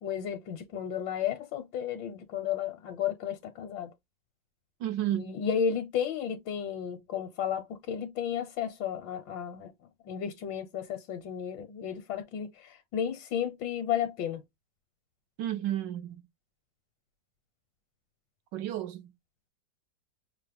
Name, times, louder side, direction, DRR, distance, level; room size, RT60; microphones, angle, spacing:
voice 1, 0.0-3.9 5.1-9.7 10.1-14.4, left 8 dB, 80° left, 1.4 m, -33 dB
voice 2, 4.8-5.3 15.4-16.2 18.5-19.1, right 12 dB, 75° right, 1.4 m, -32 dB
5.8 x 2.1 x 3.3 m
omnidirectional pair, 2.0 m